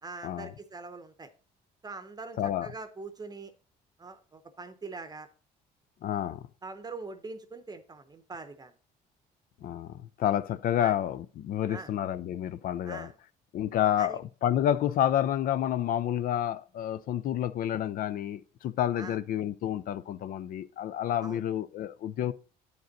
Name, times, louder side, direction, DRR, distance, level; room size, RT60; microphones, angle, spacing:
voice 1, 0.0-1.3 1.8-3.5 4.0-5.3 6.6-8.7 10.8-10.9 11.7-11.9 12.8-13.1 14.0-14.2 19.0-19.2 21.2-21.4, right 3 dB, 25° right, 0.7 m, -43 dB
voice 2, 2.4-2.7 6.0-6.5 9.6-13.1 13.5-22.3, left 11 dB, 55° left, 0.4 m, -29 dB
9.2 x 5.2 x 3.9 m
cardioid pair, 110°, 17 cm